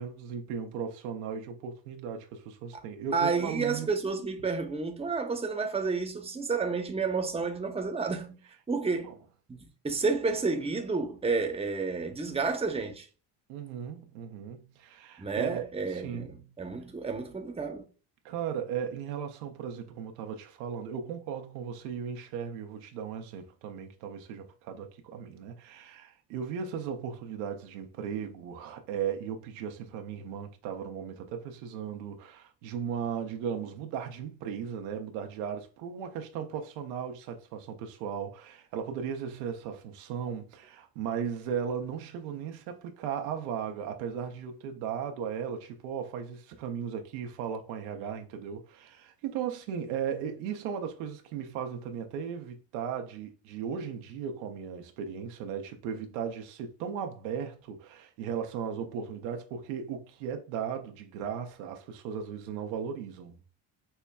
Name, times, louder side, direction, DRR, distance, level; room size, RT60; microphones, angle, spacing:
voice 1, 0.0-3.9 9.0-9.1 13.5-15.6 15.9-16.5 18.2-63.4, right 7 dB, 85° right, 0.7 m, -36 dB
voice 2, 3.1-8.4 8.7-9.1 9.5-13.1 15.2-17.8, right 4 dB, 15° right, 0.8 m, -30 dB
5.5 x 2.2 x 2.2 m
supercardioid pair, 65°, 46 cm